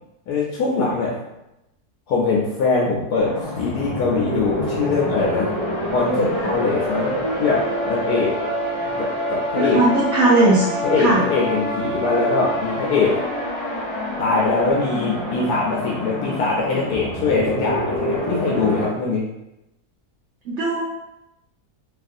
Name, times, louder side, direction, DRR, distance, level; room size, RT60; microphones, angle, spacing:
voice 1, 0.3-1.2 2.1-5.6 5.9-7.1 7.4-8.3 8.8-9.8 10.8-13.1 14.2-19.3, left 4 dB, 90° left, -3 dB, 1.1 m, -22 dB
sound 1, 3.2-18.9, equal, 15° left, 1.1 m, -26 dB
voice 2, 9.6-10.7 11.0-11.2 20.5-20.8, right 2 dB, 65° right, -4 dB, 0.8 m, -18 dB
2.9 x 2.4 x 2.5 m, 0.89 s
omnidirectional pair, 1.6 m